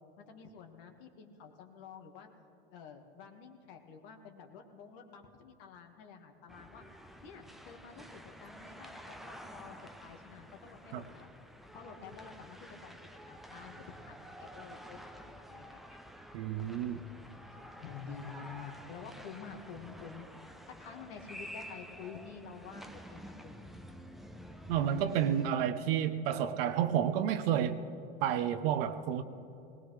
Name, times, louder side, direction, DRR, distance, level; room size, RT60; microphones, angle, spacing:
voice 1, 0.2-2.3 2.7-6.8 7.2-11.3 11.7-13.0 13.3-16.0 17.8-20.3 20.7-23.7, left 6 dB, 65° left, 4 dB, 1.8 m, -49 dB
sound 1, 6.5-25.5, equal, ahead, 0.7 m, -50 dB
voice 2, 16.3-17.0 24.7-27.8 28.2-29.2, right 9 dB, 70° right, 10 dB, 0.9 m, -30 dB
20.0 x 19.0 x 3.3 m, 2.8 s
hypercardioid pair, 90°, 31 cm